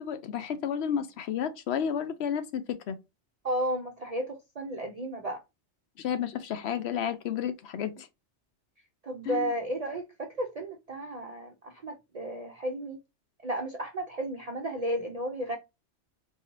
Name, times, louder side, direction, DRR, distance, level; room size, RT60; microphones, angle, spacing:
voice 1, 0.0-3.0 6.0-7.9 9.3-9.5, left 8 dB, 70° left, 0.8 m, -31 dB
voice 2, 3.4-5.4 9.0-13.0 13.4-15.6, right 1 dB, 45° right, 0.5 m, -33 dB
3.8 x 2.7 x 3.0 m
omnidirectional pair, 1.2 m